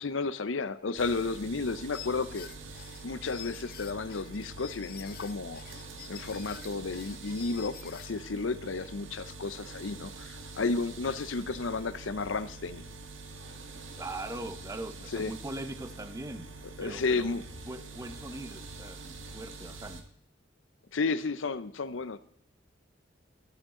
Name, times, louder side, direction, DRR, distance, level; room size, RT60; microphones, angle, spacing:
voice 1, 0.0-2.5 3.0-5.6 6.1-12.8 15.1-15.3 16.8-17.4 20.9-22.2, left 3 dB, 85° left, 14 dB, 0.7 m, -32 dB
sound 1, 1.0-20.0, right 3 dB, 90° right, 1.6 m, -45 dB
sound 2, 1.9-8.3, left 10 dB, 55° left, 0.9 m, -48 dB
voice 2, 14.0-16.5 16.8-17.4 17.7-20.0, right 1 dB, 15° right, 9 dB, 0.8 m, -41 dB
14.0 x 11.5 x 3.8 m, 0.68 s
head